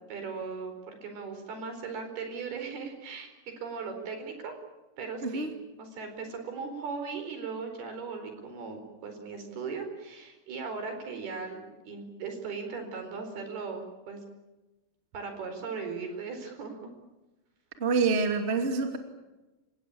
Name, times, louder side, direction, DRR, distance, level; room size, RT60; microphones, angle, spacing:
voice 1, 0.1-3.3 3.6-4.5 5.0-5.5 5.8-14.2 15.1-16.7, right 5 dB, 80° right, 6 dB, 6.3 m, -38 dB
voice 2, 17.8-19.0, right 4 dB, 20° right, 5 dB, 2.3 m, -26 dB
30.0 x 17.5 x 8.9 m, 1.1 s
omnidirectional pair, 4.4 m